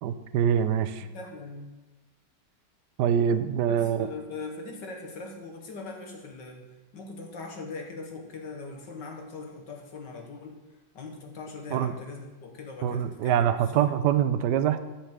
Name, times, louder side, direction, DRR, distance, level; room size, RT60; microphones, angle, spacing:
voice 1, 0.0-1.1 3.0-4.1 11.7-11.9 12.8-14.8, right 9 dB, 75° right, 10 dB, 1.2 m, -24 dB
voice 2, 1.1-1.8 3.7-6.7 6.9-10.6 10.9-14.2, left 3 dB, 75° left, 2 dB, 2.1 m, -41 dB
9.9 x 5.8 x 7.5 m, 1.1 s
omnidirectional pair, 1.9 m